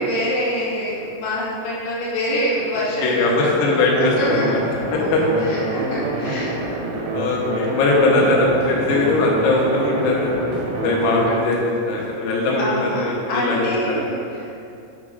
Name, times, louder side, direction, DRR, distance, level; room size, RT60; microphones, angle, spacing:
voice 1, 0.0-4.5 4.9-6.6 8.2-8.3 12.6-14.6, equal, 65° left, -8 dB, 3.2 m, -26 dB
voice 2, 3.0-4.6 4.9-5.2 7.1-10.4 10.8-11.6 11.9-14.0, left 2 dB, 90° left, -3 dB, 3.8 m, -20 dB
sound 1, 3.2-3.3 3.7-3.9 4.1-4.4 4.6-4.8 5.1-5.3 8.2-9.3 9.6-9.7 10.0-10.2 10.5-11.1 11.5-11.6 12.0-12.1 12.5-12.6, equal, 70° right, 2.1 m, -39 dB
sound 2, 3.9-11.3, right 2 dB, 90° right, 4.7 m, -26 dB
9.3 x 7.0 x 2.6 m, 2.6 s
omnidirectional pair, 5.9 m